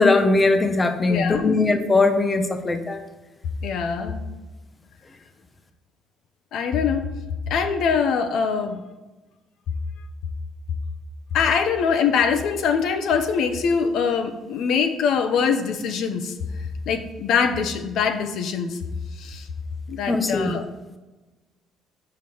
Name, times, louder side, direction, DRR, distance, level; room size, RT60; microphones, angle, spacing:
voice 1, 0.0-3.0 20.1-20.6, left 3 dB, 20° left, 7 dB, 0.6 m, -20 dB
voice 2, 1.1-1.7 3.6-4.3 6.5-7.1 7.5-8.8 11.3-18.8 19.1-19.5 19.9-20.7, left 6 dB, 65° left, 7 dB, 0.7 m, -23 dB
5.8 x 4.9 x 5.9 m, 1.1 s
cardioid pair, 120°, 0 cm